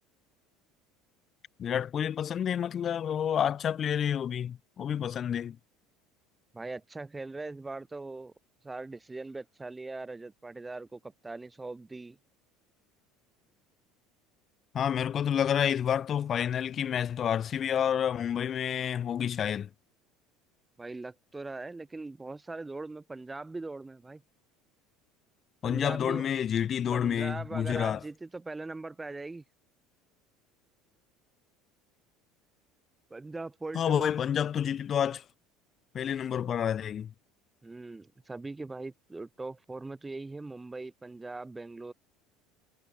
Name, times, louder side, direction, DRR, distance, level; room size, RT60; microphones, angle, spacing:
voice 1, 1.6-5.6 14.7-19.7 25.6-28.0 33.7-35.2 35.9-37.1, left 9 dB, 35° left, 2.5 m, -29 dB
voice 2, 6.5-8.3 8.6-12.2 20.8-24.2 25.6-26.3 26.9-29.4 33.1-34.1 37.6-41.9, right 3 dB, 10° right, 1.7 m, -40 dB
cardioid pair, 140°, 0 cm